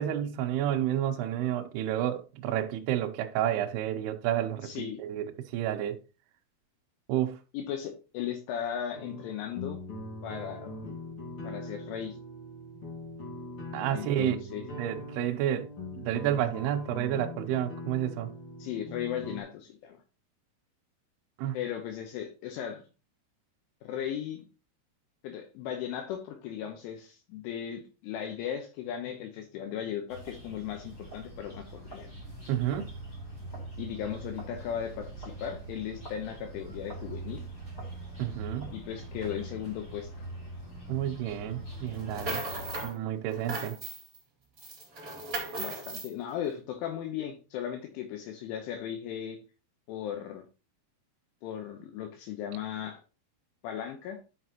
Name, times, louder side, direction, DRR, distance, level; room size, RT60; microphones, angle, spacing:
voice 1, 0.0-6.0 7.1-7.4 13.7-14.4 14.8-15.7 15.9-18.3 21.4-21.6 32.5-32.9 38.2-38.7 40.9-42.4 42.8-43.8, right 11 dB, 85° right, 2.3 m, -30 dB
voice 2, 4.6-5.0 7.5-9.8 10.2-10.7 11.4-12.2 13.9-14.6 18.6-20.0 21.5-22.8 23.8-24.5 25.2-32.1 33.8-37.4 38.7-40.3 45.6-49.4 49.9-50.4 51.4-53.0 53.6-54.2, left 9 dB, 80° left, 3.3 m, -37 dB
sound 1, 8.9-19.4, left 1 dB, 50° left, 1.7 m, -41 dB
sound 2, 30.1-42.8, right 2 dB, 20° left, 3.5 m, -43 dB
sound 3, 41.9-42.9 43.3-44.2 44.6-46.1, right 2 dB, 60° right, 0.8 m, -37 dB
11.0 x 5.6 x 2.9 m
omnidirectional pair, 5.8 m